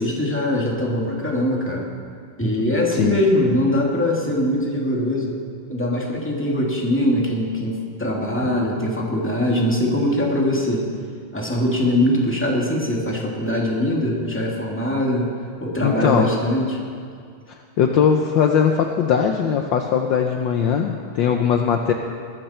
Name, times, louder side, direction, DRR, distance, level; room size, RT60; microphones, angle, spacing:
voice 1, 0.0-1.9 2.4-5.3 5.7-10.9 11.3-15.3 15.6-16.8, left 1 dB, 5° left, -2 dB, 2.3 m, -22 dB
voice 2, 15.8-16.3 17.5-21.9, left 7 dB, 65° left, 4 dB, 1.3 m, -20 dB
21.5 x 13.5 x 4.4 m, 2.2 s
omnidirectional pair, 2.4 m